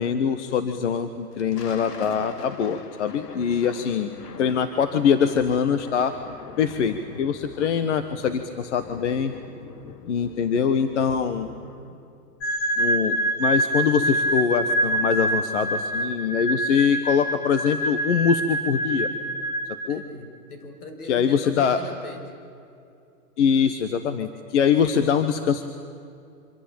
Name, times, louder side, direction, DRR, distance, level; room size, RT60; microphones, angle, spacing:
voice 1, 0.0-4.1 4.4-6.1 6.6-9.3 10.1-11.5 12.8-19.1 19.9-20.0 21.1-21.8 23.4-25.7, left 7 dB, 50° left, 10 dB, 1.3 m, -23 dB
Thunder, 1.2-11.9, left 5 dB, 85° left, 2.6 m, -43 dB
voice 2, 3.7-4.1 11.5-12.0 19.9-22.2, left 2 dB, 70° left, 5 dB, 6.6 m, -40 dB
sound 1, 12.4-20.1, right 1 dB, 10° left, 0.6 m, -26 dB
26.0 x 25.5 x 8.8 m, 2.5 s
hypercardioid pair, 170°, 46 cm